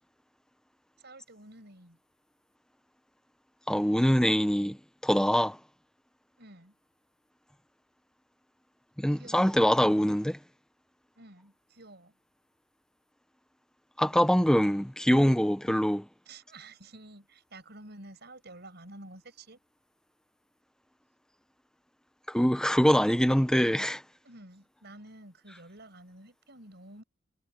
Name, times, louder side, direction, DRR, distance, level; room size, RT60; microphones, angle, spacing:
voice 1, 1.0-2.0 6.4-6.8 9.1-9.7 11.2-12.2 16.3-19.6 24.2-27.0, right 2 dB, 60° right, 7.6 m, -50 dB
voice 2, 3.7-4.8 5.0-5.6 9.0-10.4 14.0-16.1 22.3-24.0, equal, 5° left, 1.3 m, -24 dB
head